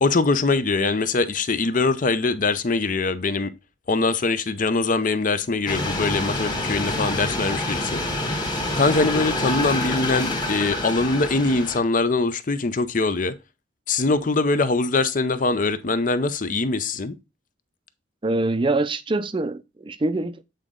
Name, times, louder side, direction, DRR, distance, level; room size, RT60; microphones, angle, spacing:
voice 1, 0.0-3.5 3.9-8.0 8.8-13.4 13.9-17.1, left 3 dB, 45° left, 0.6 m, -22 dB
sound 1, 5.7-11.8, left 2 dB, 25° left, 1.3 m, -27 dB
voice 2, 18.2-20.4, right 2 dB, 25° right, 0.5 m, -25 dB
8.1 x 3.9 x 3.7 m
head